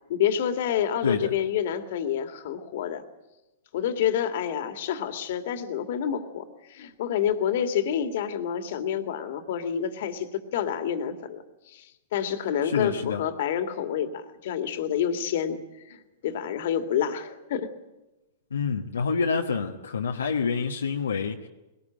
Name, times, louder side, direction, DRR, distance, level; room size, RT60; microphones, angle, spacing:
voice 1, 0.1-3.0 3.7-17.7, left 9 dB, 60° left, 8 dB, 2.2 m, -28 dB
voice 2, 1.0-1.3 12.6-13.2 18.5-21.5, left 5 dB, 85° left, 1 dB, 1.3 m, -27 dB
21.0 x 18.5 x 8.9 m, 1.0 s
hypercardioid pair, 110°, 0 cm